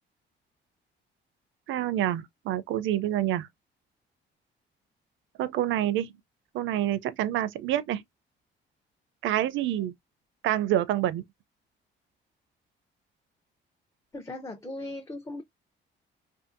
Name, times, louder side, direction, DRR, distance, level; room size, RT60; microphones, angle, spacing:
voice 1, 1.7-3.5 5.4-6.1 6.5-8.0 9.2-9.9 10.4-11.2, right 12 dB, 80° right, 0.4 m, -27 dB
voice 2, 14.1-15.4, left 2 dB, 15° left, 0.6 m, -38 dB
2.6 x 2.5 x 2.4 m
cardioid pair, 90°, 20 cm